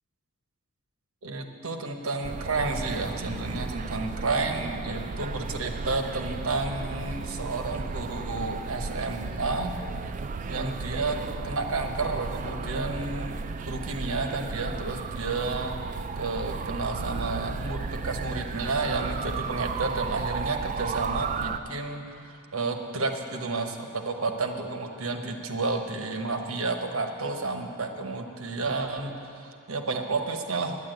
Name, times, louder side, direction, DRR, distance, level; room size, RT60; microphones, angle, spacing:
voice 1, 1.2-9.8 10.4-11.2 11.4-13.4 13.6-15.8 16.2-30.8, right 3 dB, 85° right, 5 dB, 1.0 m, -31 dB
sound 1, 2.2-21.6, right 4 dB, 35° right, 0.3 m, -34 dB
9.8 x 9.5 x 7.9 m, 2.5 s
head